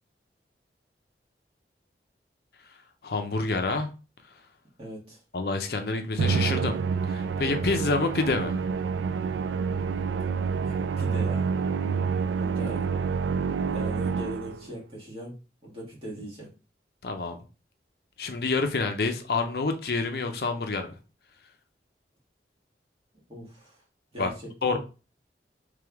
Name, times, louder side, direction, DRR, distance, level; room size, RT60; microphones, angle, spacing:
voice 1, 3.0-3.9 5.3-6.8 7.1-8.6 17.0-17.4 18.2-20.9 24.2-24.3 24.6-24.8, left 3 dB, 60° left, 0.5 m, -27 dB
voice 2, 4.8-5.2 10.6-11.5 12.4-12.8 13.7-15.3 15.6-16.5 23.3-23.8 24.1-24.8, right 1 dB, 35° right, 1.8 m, -40 dB
Musical instrument, 6.2-14.7, right 5 dB, 90° right, 0.3 m, -28 dB
3.4 x 3.3 x 3.5 m
head